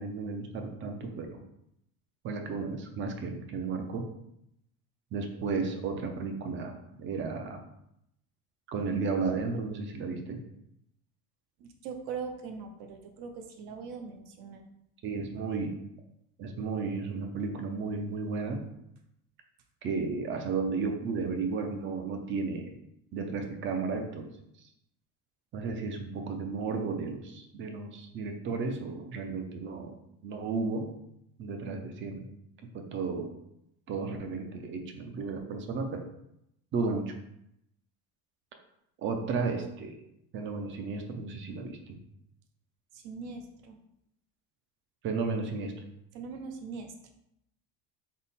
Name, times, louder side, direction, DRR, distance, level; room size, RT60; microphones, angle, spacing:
voice 1, 0.0-1.4 2.2-4.1 5.1-6.7 7.0-7.6 8.7-10.4 15.0-15.8 16.4-18.6 19.8-22.7 23.1-24.3 25.5-30.0 30.2-30.9 31.4-32.3 32.7-33.3 33.9-36.0 36.7-37.1 39.0-39.9 40.3-41.8 45.0-45.7, right 4 dB, 30° right, 5 dB, 0.4 m, -33 dB
voice 2, 11.6-14.6 42.9-43.8 46.1-46.9, right 5 dB, 70° right, 5 dB, 0.7 m, -41 dB
3.7 x 2.1 x 4.0 m, 0.80 s
cardioid pair, 145°, 39 cm